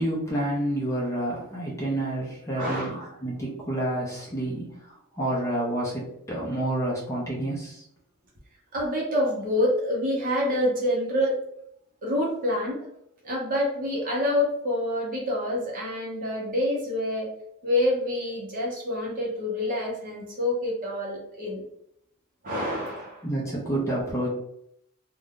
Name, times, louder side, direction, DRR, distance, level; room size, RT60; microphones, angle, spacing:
voice 1, 0.0-7.9 23.2-24.3, right 1 dB, 15° left, -5 dB, 0.6 m, -29 dB
voice 2, 2.6-3.1 8.7-11.4 12.0-12.9 13.2-17.3 17.6-21.6 22.4-23.3, left 1 dB, 40° right, -3 dB, 0.9 m, -27 dB
2.5 x 2.3 x 3.6 m, 0.75 s
head